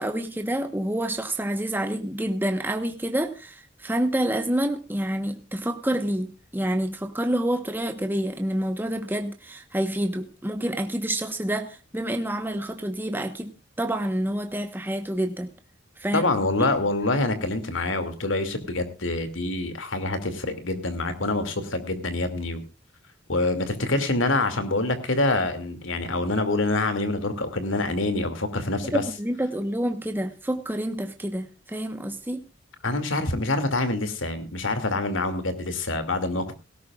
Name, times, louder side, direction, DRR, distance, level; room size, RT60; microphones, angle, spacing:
voice 1, 0.0-15.5 16.0-16.3 16.6-16.7 28.9-32.4, right 1 dB, 10° right, 6 dB, 1.1 m, -28 dB
voice 2, 16.1-22.6 23.3-29.0 32.8-36.5, left 2 dB, 85° left, 9 dB, 2.6 m, -26 dB
18.0 x 17.0 x 2.4 m, 0.30 s
head